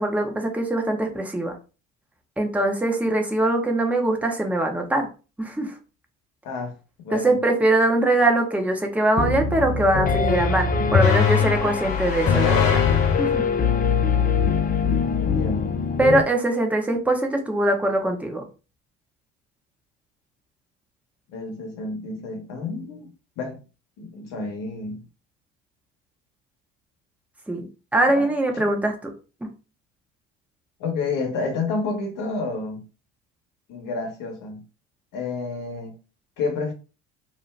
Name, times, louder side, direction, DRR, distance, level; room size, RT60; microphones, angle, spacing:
voice 1, 0.0-1.5 2.4-5.1 5.4-5.7 7.1-12.8 13.2-13.6 16.0-18.4 27.5-27.7 27.9-29.1 29.4-29.5, right 1 dB, 5° right, 0.8 m, -22 dB
voice 2, 7.0-7.4 15.2-15.7 21.3-23.1 23.4-23.6 24.0-25.0 28.1-28.2 28.5-28.6 30.8-32.8 33.7-34.6 35.1-35.9 36.4-36.7, left 3 dB, 55° left, 1.1 m, -30 dB
Piano, 9.2-16.2, left 6 dB, 25° left, 0.4 m, -22 dB
sound 1, 11.0-13.6, left 6 dB, 80° left, 0.8 m, -27 dB
2.7 x 2.1 x 3.2 m
hypercardioid pair, 65°, 38 cm